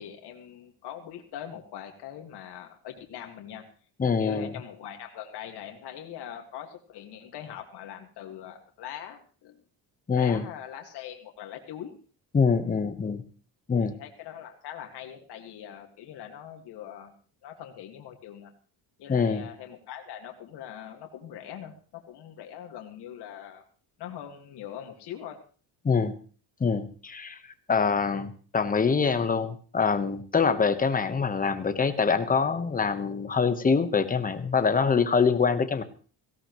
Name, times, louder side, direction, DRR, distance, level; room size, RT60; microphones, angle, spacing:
voice 1, 0.0-3.6 4.0-9.6 10.1-11.9 13.8-17.1 17.4-18.5 19.0-23.6 24.0-25.4, left 10 dB, 70° left, 3 dB, 2.0 m, -42 dB
voice 2, 4.0-4.5 10.1-10.4 12.3-13.2 13.7-14.0 19.1-19.5 25.8-26.1 26.6-27.4 27.7-35.8, left 5 dB, 20° left, 10 dB, 1.1 m, -24 dB
17.0 x 16.5 x 3.1 m, 0.39 s
cardioid pair, 150°, 41 cm